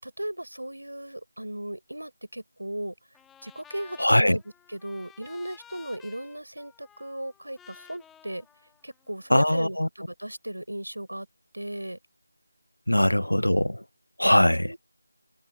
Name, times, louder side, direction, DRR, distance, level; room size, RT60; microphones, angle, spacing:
voice 1, 0.0-2.9 3.4-4.4 4.7-8.5 8.8-11.3 11.5-12.0 14.6-14.8, right 1 dB, 80° right, 5.5 m, -36 dB
Trumpet, 3.1-9.4, left 9 dB, 5° left, 6.1 m, -54 dB
voice 2, 4.0-4.4 9.3-9.9 12.9-13.8 14.2-14.7, left 1 dB, 85° left, 0.5 m, -21 dB
figure-of-eight pair, 165°, 0 cm